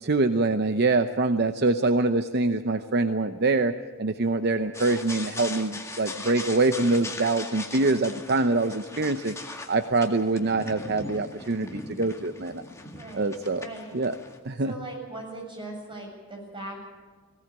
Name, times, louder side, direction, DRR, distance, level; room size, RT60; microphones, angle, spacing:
voice 1, 0.0-9.3 9.7-12.6 13.1-13.7 13.9-14.1 14.4-14.7, right 3 dB, 50° right, 9 dB, 0.8 m, -24 dB
sound 1, 4.7-14.4, left 2 dB, 15° left, 1.9 m, -40 dB
voice 2, 12.9-13.9 14.6-16.8, right 2 dB, 25° right, 0 dB, 7.8 m, -39 dB
20.0 x 17.5 x 8.9 m, 1.5 s
head